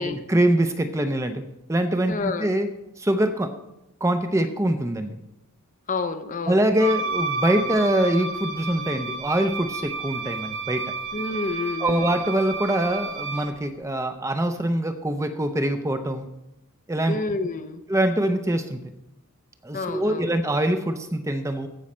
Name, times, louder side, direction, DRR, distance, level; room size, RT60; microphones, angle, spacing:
voice 1, 0.0-1.4 1.7-2.7 3.0-3.5 4.0-5.2 6.5-10.9 11.8-16.3 16.9-17.2 17.9-18.9 19.6-21.7, right 1 dB, 15° right, 8 dB, 0.6 m, -24 dB
voice 2, 2.1-2.5 5.9-6.6 11.1-12.1 17.1-17.8 19.7-20.4, left 3 dB, 35° left, 9 dB, 0.6 m, -29 dB
Wind instrument woodwind instrument, 6.8-13.6, right 3 dB, 55° right, 1.1 m, -31 dB
15.5 x 6.3 x 4.3 m, 0.91 s
head